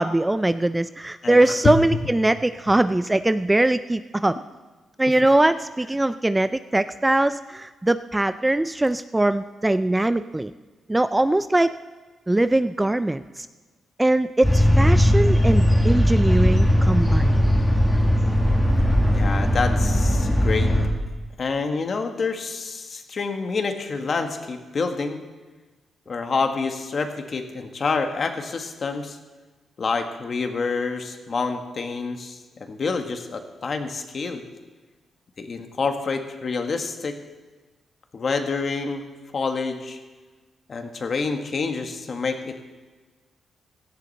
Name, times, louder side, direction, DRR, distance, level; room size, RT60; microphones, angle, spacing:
voice 1, 0.0-4.4 5.0-10.5 10.9-11.7 12.3-13.5 14.0-17.4, right 1 dB, 10° right, 12 dB, 0.3 m, -21 dB
voice 2, 1.2-2.0 19.1-20.7 21.4-25.2 26.1-29.2 29.8-34.4 35.4-37.2 38.1-39.0 39.3-40.0 40.7-42.6, left 4 dB, 40° left, 6 dB, 1.5 m, -27 dB
sound 1, 14.4-20.9, equal, 5° left, 1.9 m, -18 dB
17.0 x 14.5 x 4.2 m, 1.3 s
cardioid pair, 130°, 0 cm